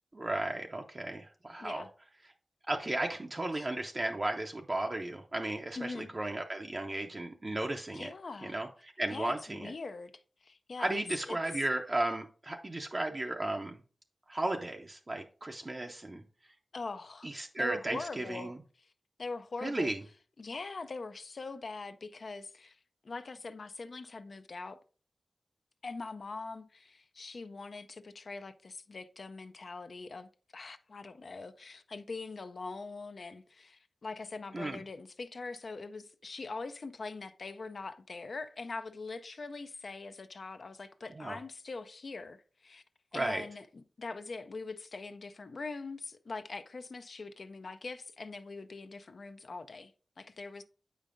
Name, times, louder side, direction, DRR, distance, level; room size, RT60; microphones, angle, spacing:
voice 1, 0.1-1.8 2.7-8.1 8.4-8.7 9.0-9.7 10.8-13.8 14.3-16.2 17.2-18.5 19.6-20.0 34.5-34.8 41.2-41.4 43.1-43.4, right 2 dB, 35° right, 0.5 m, -34 dB
voice 2, 1.6-1.9 3.5-3.7 5.8-6.1 7.9-8.6 9.1-11.0 11.3-11.4 16.7-17.3 17.6-18.5 18.8-18.9 19.2-19.9 20.4-22.8 23.0-24.8 25.8-42.8 43.1-43.7 44.0-50.6, left 3 dB, 65° left, 0.4 m, -42 dB
8.3 x 5.1 x 2.5 m
wide cardioid pair, 90°, 0 cm